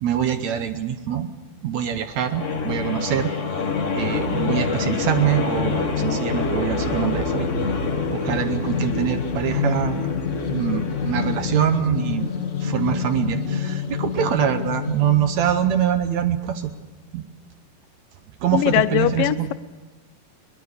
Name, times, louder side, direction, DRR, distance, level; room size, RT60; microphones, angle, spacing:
voice 1, 0.0-1.3 1.6-3.3 3.9-7.5 8.1-10.1 10.4-12.2 12.6-16.6 17.1-17.2 18.4-19.5, right 9 dB, 70° right, 9 dB, 2.0 m, -24 dB
sound 1, 2.2-15.5, left 5 dB, 65° left, 0.7 m, -26 dB
voice 2, 18.5-19.5, left 13 dB, 85° left, 12 dB, 2.5 m, -20 dB
22.0 x 20.5 x 6.6 m, 1.3 s
omnidirectional pair, 3.8 m